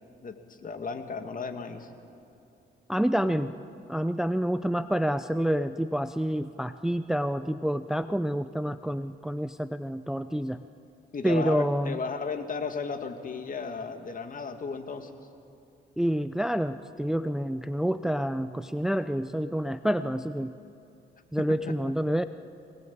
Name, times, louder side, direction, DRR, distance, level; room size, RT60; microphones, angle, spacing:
voice 1, 0.2-1.9 11.1-15.1, left 5 dB, 45° left, 7 dB, 2.2 m, -34 dB
voice 2, 2.9-3.5 3.9-10.6 11.2-12.0 16.0-20.5 21.3-22.2, equal, ahead, 11 dB, 0.6 m, -28 dB
23.0 x 19.5 x 8.7 m, 2.6 s
cardioid pair, 90°, 20 cm